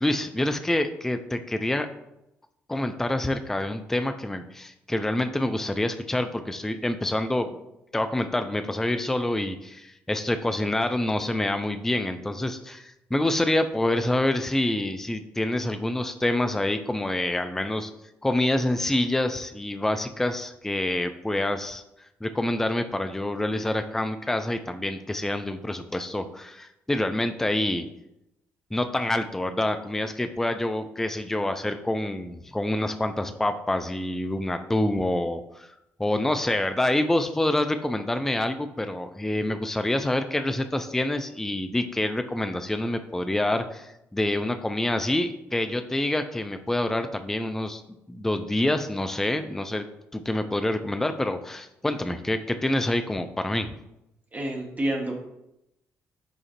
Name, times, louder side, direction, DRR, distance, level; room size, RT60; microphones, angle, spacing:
voice 1, 0.0-1.9 2.7-7.5 7.9-17.9 18.2-21.8 22.2-27.8 28.7-35.7 36.0-47.8 48.1-49.9 50.1-53.7, left 1 dB, 5° left, 8 dB, 0.3 m, -27 dB
voice 2, 54.3-55.1, right 1 dB, 25° right, -1 dB, 1.0 m, -28 dB
7.0 x 2.5 x 2.5 m, 0.85 s
figure-of-eight pair, 45°, 7 cm